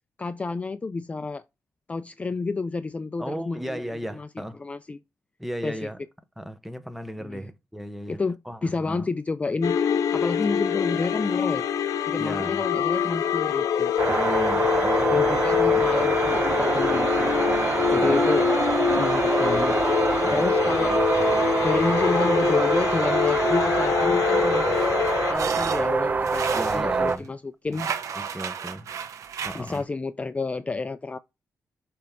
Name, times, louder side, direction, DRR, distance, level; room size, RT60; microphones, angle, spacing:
voice 1, 0.2-1.4 1.9-3.8 4.1-4.3 4.6-5.0 5.6-5.9 7.2-7.5 8.1-9.8 10.1-11.7 12.1-13.9 15.1-17.3 17.9-18.5 19.0-19.8 20.3-21.0 21.6-24.8 25.3-27.9 29.5-31.2, left 3 dB, 25° left, 0.4 m, -30 dB
voice 2, 3.2-4.6 5.4-6.0 6.4-8.2 8.5-9.1 12.2-12.6 14.1-15.4 17.9-18.2 20.2-20.4 20.8-21.7 23.4-23.6 26.5-27.3 27.7-27.8 28.1-28.9 29.4-29.9, equal, 5° right, 0.9 m, -35 dB
sound 1, 9.6-25.3, left 7 dB, 85° left, 0.9 m, -24 dB
sound 2, 14.0-27.2, right 4 dB, 35° right, 0.5 m, -25 dB
sound 3, 24.7-27.2 27.7-29.8, right 7 dB, 75° right, 1.0 m, -33 dB
6.8 x 4.6 x 3.6 m
cardioid pair, 105°, 6 cm